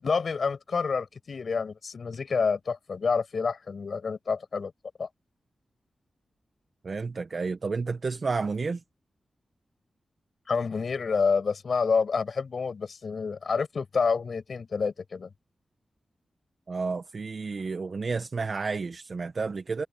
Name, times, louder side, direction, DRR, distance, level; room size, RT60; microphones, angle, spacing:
voice 1, 0.0-4.7 5.0-5.1 10.5-15.3, left 5 dB, 65° left, 6.1 m, -28 dB
voice 2, 6.8-8.8 16.7-19.8, right 4 dB, 55° right, 1.2 m, -31 dB
cardioid pair, 60°, 0 cm